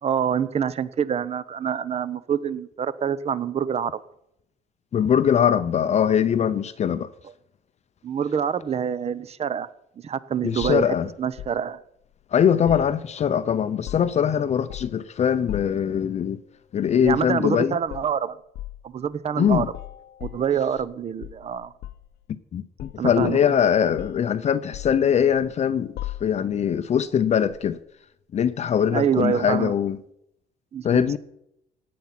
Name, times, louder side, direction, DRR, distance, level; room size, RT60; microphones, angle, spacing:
voice 1, 0.0-4.0 8.0-9.7 10.0-10.9 11.2-11.8 17.0-18.4 18.8-19.7 20.2-21.7 23.0-23.4 28.9-29.7 30.7-31.2, right 7 dB, 40° right, 0.8 m, -26 dB
voice 2, 4.9-7.1 10.4-11.1 12.3-16.4 16.7-17.8 19.4-19.7 22.5-27.8 28.3-30.0 30.8-31.2, left 8 dB, 40° left, 0.6 m, -22 dB
sound 1, 10.6-11.6 12.7-13.4 13.7-14.3 14.7-15.1 15.5-15.9 17.0-17.3 17.9-18.1 18.5-18.8 19.5-20.9 21.2-22.1 22.8-23.6 24.0-24.3 24.7-25.5 26.0-26.6 27.5-27.7, left 14 dB, 70° left, 0.8 m, -38 dB
16.0 x 9.5 x 5.9 m
cardioid pair, 110°, 17 cm